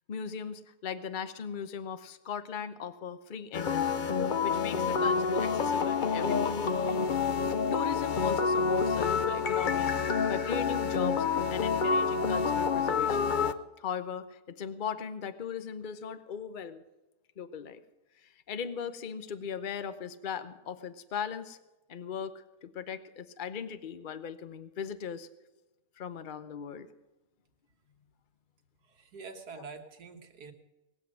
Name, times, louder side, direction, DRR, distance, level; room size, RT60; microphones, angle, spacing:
voice 1, 0.1-3.9 4.4-6.6 7.7-13.4 13.8-16.8 17.4-17.8 18.2-21.6 21.9-25.3 26.0-26.9, left 7 dB, 40° left, 11 dB, 0.9 m, -38 dB
sound 1, 3.5-13.5, left 5 dB, 60° left, 0.5 m, -28 dB
voice 2, 28.8-30.5, right 4 dB, 75° right, 5 dB, 2.0 m, -46 dB
19.0 x 7.7 x 7.7 m, 1.0 s
omnidirectional pair, 1.7 m